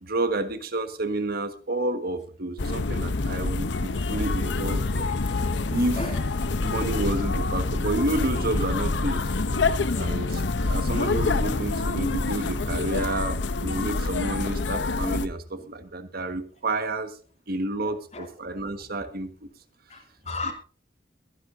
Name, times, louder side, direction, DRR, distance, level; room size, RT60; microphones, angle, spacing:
voice 1, 0.0-5.1 5.7-6.1 6.6-9.2 10.0-17.1 17.5-19.3 20.4-20.5, right 2 dB, 55° right, 9 dB, 1.5 m, -30 dB
sound 1, 2.6-15.3, left 3 dB, 70° left, 0.8 m, -26 dB
voice 2, 5.0-6.2 9.9-10.5 17.8-18.3 19.9-20.5, left 3 dB, 35° left, 4 dB, 2.8 m, -38 dB
22.5 x 10.5 x 2.6 m, 0.39 s
head